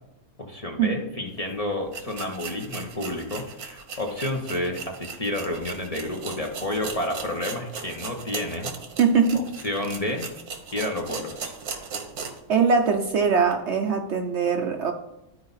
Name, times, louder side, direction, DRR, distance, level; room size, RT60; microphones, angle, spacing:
voice 1, 0.4-8.7 9.3-10.3 10.7-11.5, left 1 dB, 30° left, 1 dB, 0.9 m, -30 dB
sound 1, 1.4-1.5 1.9-12.5 12.9-13.0 13.5-13.6, right 5 dB, 85° right, 1.5 m, -38 dB
voice 2, 9.0-9.4 12.5-14.9, right 5 dB, 60° right, 5 dB, 0.8 m, -21 dB
12.0 x 4.6 x 4.0 m, 0.93 s
omnidirectional pair, 1.5 m